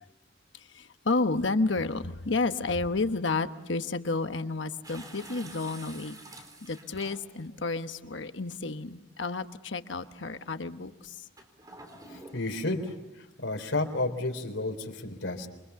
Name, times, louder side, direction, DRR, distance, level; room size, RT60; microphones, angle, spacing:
voice 1, 0.5-6.2 6.6-11.3, left 3 dB, 70° left, 9 dB, 1.2 m, -31 dB
sound 1, 4.8-7.6 8.4-8.5 11.4-13.0, right 2 dB, 20° right, 3.9 m, -48 dB
voice 2, 12.1-12.9 13.4-15.5, left 2 dB, 90° left, 5 dB, 3.8 m, -31 dB
27.5 x 25.0 x 7.0 m, 1.0 s
head